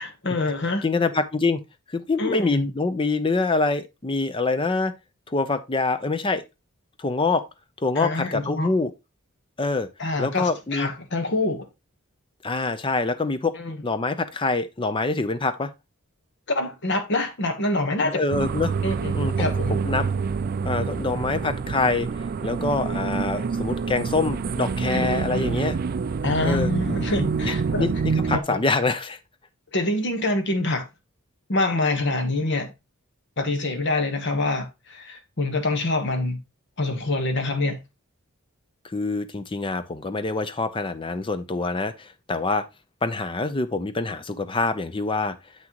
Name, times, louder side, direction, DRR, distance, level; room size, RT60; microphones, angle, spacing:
voice 1, 0.0-0.8 2.2-2.7 8.0-8.7 10.0-11.7 13.6-13.8 16.5-18.2 18.8-19.7 24.9-25.1 26.2-27.8 28.3-28.6 29.7-30.9 31.5-32.7 33.4-36.4 36.8-37.8, left 2 dB, 55° left, 1.3 m, -26 dB
voice 2, 0.8-1.6 1.9-4.9 5.3-6.4 7.0-7.4 7.8-8.9 9.6-9.9 10.2-10.9 12.4-13.5 13.8-15.7 18.0-18.7 19.1-20.1 20.6-22.1 22.4-25.8 26.4-26.7 27.4-29.2 38.8-42.6 43.0-45.4, left 3 dB, 25° left, 0.6 m, -25 dB
sound 1, 18.3-28.4, right 5 dB, 45° right, 0.3 m, -26 dB
7.4 x 6.0 x 3.0 m
head